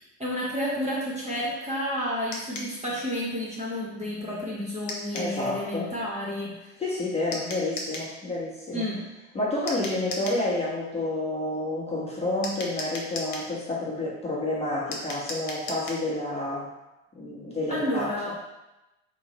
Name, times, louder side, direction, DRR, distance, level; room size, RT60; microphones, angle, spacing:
voice 1, 0.2-6.7 8.7-9.0 17.7-18.3, equal, 15° right, -6 dB, 1.3 m, -30 dB
sound 1, 2.3-2.7 4.9-5.3 7.3-8.1 9.7-10.4 12.4-13.5 14.9-16.0, left 2 dB, 60° left, 1.1 m, -36 dB
voice 2, 5.1-5.9 6.8-8.9 9.3-16.7 17.2-18.3, left 2 dB, 15° left, -7 dB, 1.3 m, -29 dB
3.1 x 3.0 x 4.1 m, 0.98 s
hypercardioid pair, 75°, 41 cm